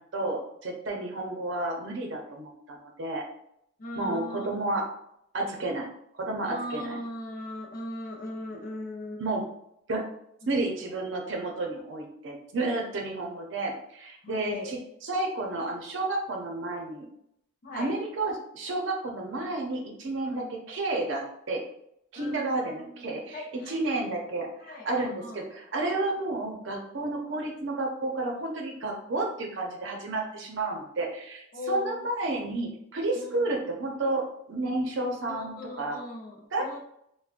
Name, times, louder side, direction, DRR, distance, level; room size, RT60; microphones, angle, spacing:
voice 1, 0.0-3.2 4.0-4.8 5.3-5.9 6.2-6.9 9.2-9.4 9.9-10.1 10.5-17.1 17.8-21.6 22.1-23.4 23.7-36.0 36.5-36.7, right 2 dB, 65° right, 1 dB, 0.6 m, -31 dB
voice 2, 3.8-4.6 6.5-9.2 14.2-14.7 17.6-17.9 20.2-20.5 22.2-24.0 24.6-25.5 31.5-32.1 33.1-33.5 35.3-36.8, left 2 dB, 45° left, -1 dB, 0.6 m, -39 dB
3.6 x 2.1 x 2.4 m, 0.75 s
head